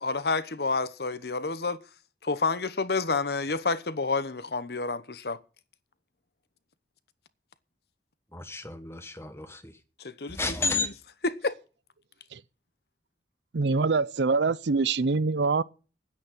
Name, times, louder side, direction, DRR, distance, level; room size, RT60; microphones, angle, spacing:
voice 1, 0.0-1.8 2.2-5.4 10.0-10.9 11.2-11.5, left 3 dB, 60° left, 1.0 m, -29 dB
voice 2, 8.3-9.7 10.3-10.9, left 3 dB, 15° left, 1.1 m, -31 dB
voice 3, 13.5-15.6, right 4 dB, 75° right, 0.6 m, -24 dB
9.9 x 9.2 x 9.6 m
head